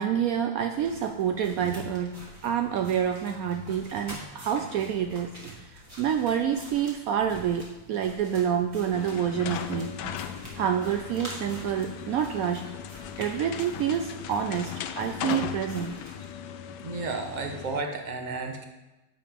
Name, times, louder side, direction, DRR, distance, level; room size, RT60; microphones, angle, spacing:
voice 1, 0.0-2.2 2.4-10.0 10.5-12.6 13.2-16.0, right 8 dB, 80° right, 5 dB, 0.7 m, -28 dB
sound 1, 0.7-16.3, equal, 15° right, 1.7 m, -47 dB
sound 2, 8.9-17.8, left 9 dB, 70° left, 1.1 m, -38 dB
voice 2, 16.8-18.7, right 3 dB, 35° right, 3 dB, 0.8 m, -32 dB
10.5 x 7.7 x 3.6 m, 1.1 s
omnidirectional pair, 2.1 m